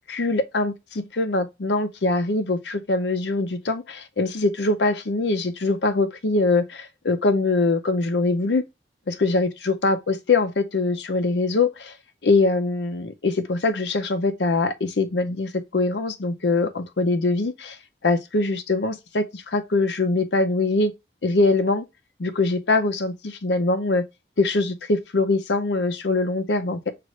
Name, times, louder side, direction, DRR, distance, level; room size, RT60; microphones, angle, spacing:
voice 1, 0.1-8.6 9.1-11.9 12.2-17.8 18.0-20.9 21.2-21.8 22.2-24.0 24.4-26.9, left 3 dB, 80° left, 0.6 m, -23 dB
6.3 x 2.5 x 3.1 m
head